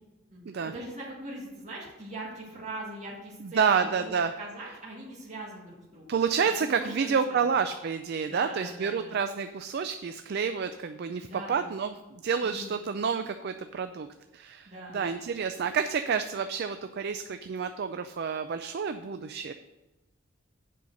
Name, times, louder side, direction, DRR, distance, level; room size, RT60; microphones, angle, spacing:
voice 1, 0.3-4.1 4.4-6.1 6.6-7.4 8.2-9.2 11.2-11.7 12.4-12.8 14.7-15.0, right 1 dB, 35° right, -5 dB, 1.9 m, -41 dB
voice 2, 3.4-4.3 6.1-14.1 14.3-19.5, right 6 dB, 50° right, 9 dB, 0.4 m, -29 dB
7.6 x 5.4 x 6.4 m, 1.1 s
head